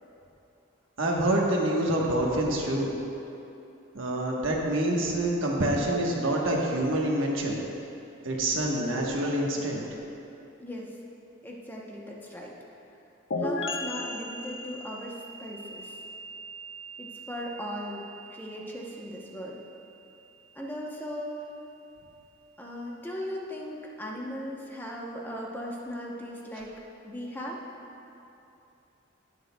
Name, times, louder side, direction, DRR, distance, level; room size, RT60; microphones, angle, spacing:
voice 1, 1.0-2.9 3.9-7.5 8.2-9.8, right 1 dB, 75° right, -1 dB, 1.2 m, -26 dB
voice 2, 11.4-12.5 13.4-15.1 15.4-15.9 17.0-18.0 18.3-19.5 20.6-21.4 22.6-26.7 27.0-27.6, equal, 10° left, -3 dB, 0.8 m, -37 dB
sound 1, 13.3-20.9, left 2 dB, 70° left, 0.7 m, -38 dB
18.5 x 6.5 x 2.3 m, 2.8 s
head